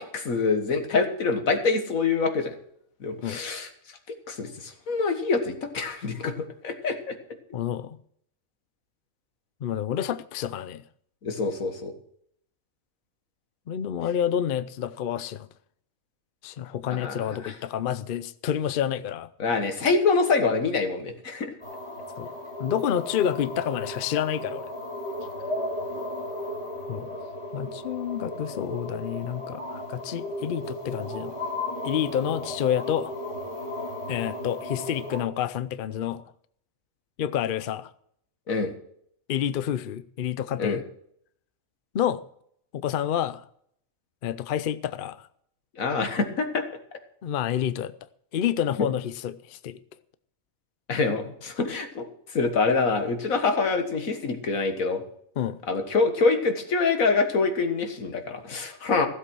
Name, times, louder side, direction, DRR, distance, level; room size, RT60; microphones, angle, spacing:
voice 1, 0.0-2.6 3.0-3.7 4.3-6.3 6.6-7.2 11.2-11.9 16.9-17.5 19.4-21.5 38.5-38.7 40.6-40.8 45.8-46.6 50.9-55.0 55.7-59.1, left 4 dB, 90° left, 1.9 m, -25 dB
voice 2, 7.5-8.0 9.6-10.8 13.7-15.5 16.4-19.3 22.2-22.3 22.6-24.7 26.9-27.1 27.5-31.3 31.8-33.1 34.1-36.2 37.2-37.9 39.3-40.8 41.9-42.2 42.7-43.4 44.2-45.3 47.2-47.9 48.3-49.8 55.4-55.6, left 10 dB, 55° left, 0.6 m, -29 dB
sound 1, 21.6-35.2, left 1 dB, 20° left, 3.3 m, -35 dB
16.0 x 7.8 x 6.2 m
omnidirectional pair, 1.4 m